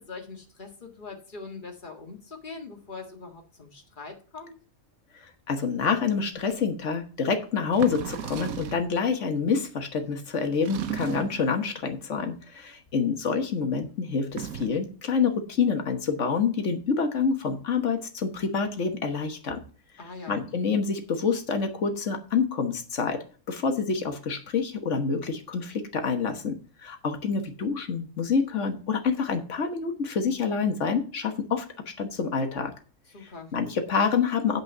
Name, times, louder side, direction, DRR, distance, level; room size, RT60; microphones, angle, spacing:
voice 1, 0.0-4.5 20.0-20.4 33.1-33.5, left 4 dB, 35° left, 3 dB, 1.9 m, -42 dB
voice 2, 5.5-19.6 20.3-26.6 26.8-32.7 33.5-34.6, left 5 dB, 55° left, 7 dB, 1.6 m, -27 dB
sound 1, 7.7-8.9 10.6-11.5 14.2-14.9, right 8 dB, 75° right, 1.3 m, -35 dB
8.7 x 5.1 x 6.6 m, 0.39 s
omnidirectional pair, 1.5 m